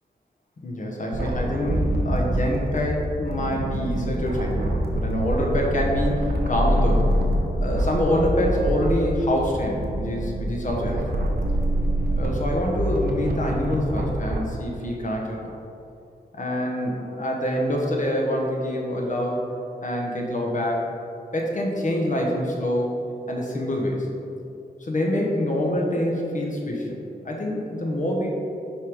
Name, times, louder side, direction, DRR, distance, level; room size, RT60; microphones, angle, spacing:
voice 1, 0.6-7.1 7.6-11.2 12.2-15.5 16.3-19.4 19.8-20.8 21.3-24.1 24.8-27.0 27.2-28.3, left 1 dB, 50° left, -1 dB, 1.2 m, -26 dB
sound 1, 1.1-14.4, right 1 dB, 70° right, 0.8 m, -25 dB
5.4 x 3.7 x 4.9 m, 2.6 s
cardioid pair, 55°, 17 cm